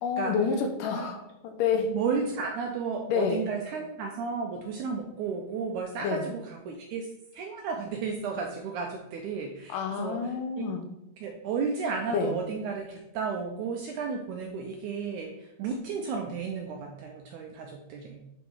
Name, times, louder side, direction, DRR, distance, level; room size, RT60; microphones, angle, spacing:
voice 1, 0.0-2.0 3.1-3.5 6.0-6.2 9.7-10.9 12.1-12.4, left 6 dB, 75° left, 5 dB, 2.2 m, -28 dB
voice 2, 1.9-7.1 7.3-10.2 10.6-10.7 11.2-18.2, right 5 dB, 85° right, 2 dB, 1.7 m, -33 dB
9.2 x 4.0 x 4.7 m, 0.87 s
omnidirectional pair, 4.3 m